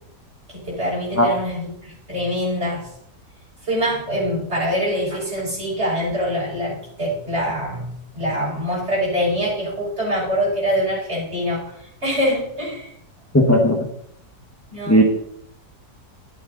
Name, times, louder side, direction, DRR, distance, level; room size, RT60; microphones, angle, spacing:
voice 1, 0.5-2.9 3.7-12.9 14.7-15.0, equal, 40° right, -5 dB, 5.7 m, -24 dB
voice 2, 13.3-13.9 14.9-15.0, equal, 10° left, 1 dB, 1.2 m, -15 dB
11.5 x 10.5 x 3.9 m, 0.71 s
omnidirectional pair, 1.7 m